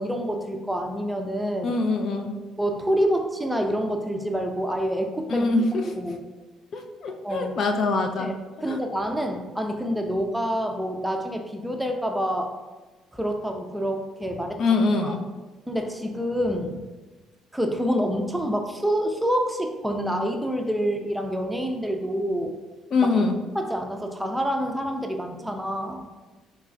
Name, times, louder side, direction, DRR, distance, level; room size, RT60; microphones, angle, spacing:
voice 1, 0.0-1.8 2.6-5.5 6.0-6.2 7.1-7.6 8.2-8.3 8.6-12.5 13.1-14.6 15.0-15.1 15.7-16.8 17.5-22.5 23.0-23.3 23.5-26.1, equal, 5° right, 4 dB, 0.5 m, -27 dB
voice 2, 1.6-2.3 5.3-5.7 6.7-8.3 8.7-8.8 14.6-15.2 22.9-23.4, left 3 dB, 55° left, 5 dB, 0.4 m, -23 dB
3.2 x 2.3 x 3.9 m, 1.2 s
supercardioid pair, 70°, 0 cm